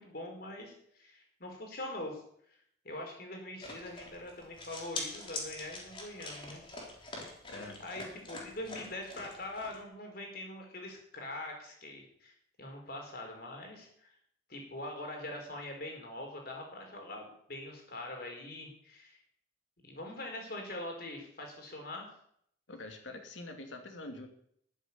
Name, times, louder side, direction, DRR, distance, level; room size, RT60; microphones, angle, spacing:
voice 1, 0.0-2.2 2.8-6.6 7.8-12.3 12.6-14.1 14.5-19.2 19.8-22.1, left 1 dB, 50° left, 2 dB, 4.6 m, -43 dB
sound 1, 3.6-9.8, left 2 dB, 25° left, 3.5 m, -44 dB
voice 2, 7.4-7.8 22.7-24.3, left 2 dB, 80° left, 5 dB, 2.7 m, -45 dB
13.0 x 8.1 x 9.6 m, 0.68 s
head